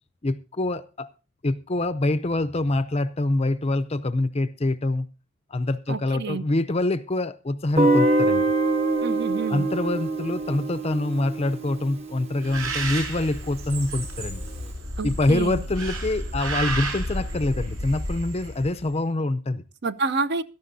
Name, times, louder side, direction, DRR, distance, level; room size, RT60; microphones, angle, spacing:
voice 1, 0.2-1.1 1.4-5.1 5.5-8.4 9.5-14.5 15.0-19.6, left 2 dB, 30° left, 0.5 m, -25 dB
voice 2, 5.9-6.4 9.0-9.7 15.0-15.6 19.8-20.4, right 4 dB, 50° right, 0.7 m, -28 dB
Guitar, 7.8-12.6, right 2 dB, 30° right, 0.9 m, -24 dB
Bird, 12.4-18.8, right 1 dB, 80° right, 7.0 m, -31 dB
17.0 x 13.0 x 2.7 m
head